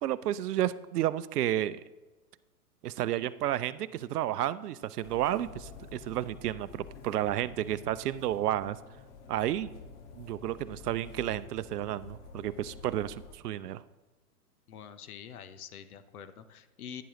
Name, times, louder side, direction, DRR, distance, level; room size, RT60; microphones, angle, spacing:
voice 1, 0.0-1.8 2.8-8.8 9.3-9.7 10.1-13.8, right 12 dB, 80° right, 15 dB, 0.6 m, -31 dB
sound 1, 5.0-13.3, left 4 dB, 50° left, 1.5 m, -49 dB
voice 2, 14.7-17.0, left 8 dB, 70° left, 11 dB, 1.0 m, -46 dB
11.0 x 9.2 x 3.0 m, 1.1 s
hypercardioid pair, 125°, 46 cm